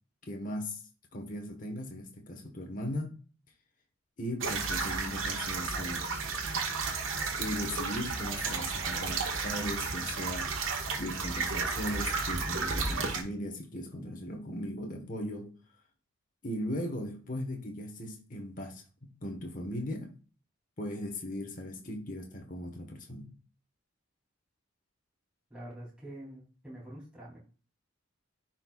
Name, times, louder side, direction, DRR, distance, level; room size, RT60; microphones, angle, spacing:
voice 1, 0.3-0.8 1.1-3.2 4.2-6.1 7.4-10.5 10.8-15.5 16.4-20.1 20.8-23.3, left 1 dB, 40° left, 1.3 m, -38 dB
sound 1, 4.4-13.2, right 4 dB, 70° right, 1.5 m, -33 dB
voice 2, 25.5-27.4, right 1 dB, 5° right, 3.0 m, -46 dB
10.0 x 4.5 x 2.4 m
head